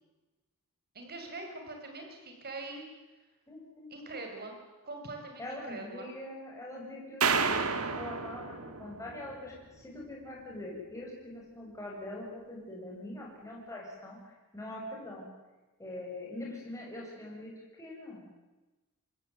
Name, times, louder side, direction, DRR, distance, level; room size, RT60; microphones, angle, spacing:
voice 1, 0.9-2.9 3.9-4.6 4.8-6.1, right 2 dB, 45° right, 3 dB, 6.0 m, -43 dB
voice 2, 3.5-3.9 5.4-15.3 15.8-17.5 17.8-18.3, left 1 dB, 15° left, -3 dB, 7.2 m, -43 dB
sound 1, 7.2-9.5, right 5 dB, 75° right, 2.0 m, -31 dB
27.0 x 20.5 x 9.3 m, 1.1 s
head